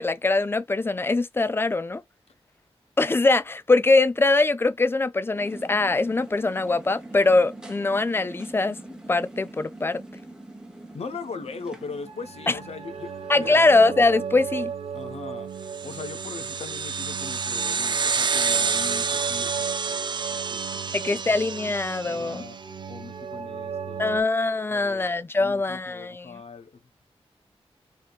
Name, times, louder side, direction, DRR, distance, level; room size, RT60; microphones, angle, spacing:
voice 1, 0.0-2.0 3.0-8.8 9.1-10.0 12.5-12.6 13.3-14.7 20.9-22.4 24.0-26.4, left 3 dB, 20° left, 0.4 m, -22 dB
sound 1, 5.3-16.4, right 1 dB, 5° right, 0.9 m, -44 dB
voice 2, 10.9-13.6 14.9-15.5 15.8-21.2 22.0-24.2 24.7-25.1 25.4-26.7, left 4 dB, 75° left, 0.9 m, -40 dB
sound 2, 12.1-24.2, right 7 dB, 70° right, 0.8 m, -36 dB
sound 3, 15.7-22.5, right 5 dB, 45° right, 0.4 m, -28 dB
4.2 x 3.6 x 2.3 m
wide cardioid pair, 135°, 11 cm